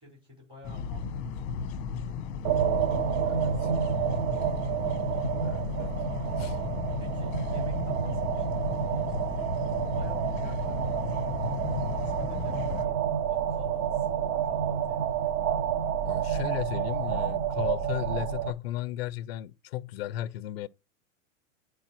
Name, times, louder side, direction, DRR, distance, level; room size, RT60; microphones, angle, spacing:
voice 1, 0.0-4.5 7.0-15.3, left 1 dB, 15° right, 4.5 m, -51 dB
sound 1, 0.6-12.8, left 5 dB, 30° left, 0.9 m, -35 dB
sound 2, 2.4-18.5, right 8 dB, 85° right, 1.0 m, -29 dB
voice 2, 5.4-5.9 6.4-6.6 16.0-20.7, left 14 dB, 50° left, 0.4 m, -35 dB
11.0 x 4.8 x 2.9 m
supercardioid pair, 155°, 41 cm